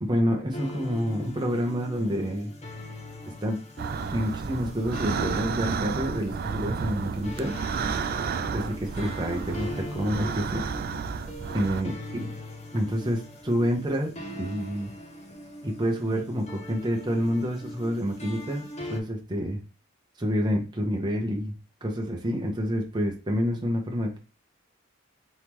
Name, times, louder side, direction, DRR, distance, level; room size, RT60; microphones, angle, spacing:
voice 1, 0.0-2.5 3.4-3.6 4.1-7.6 8.5-10.7 11.5-12.0 12.7-14.9 15.6-19.6 20.2-21.5 21.8-24.2, equal, 20° right, 1 dB, 0.8 m, -28 dB
sound 1, 0.5-19.0, left 1 dB, 35° left, 0.9 m, -41 dB
sound 2, 3.8-11.8, right 5 dB, 50° right, 0.3 m, -32 dB
4.6 x 3.0 x 3.6 m, 0.33 s
head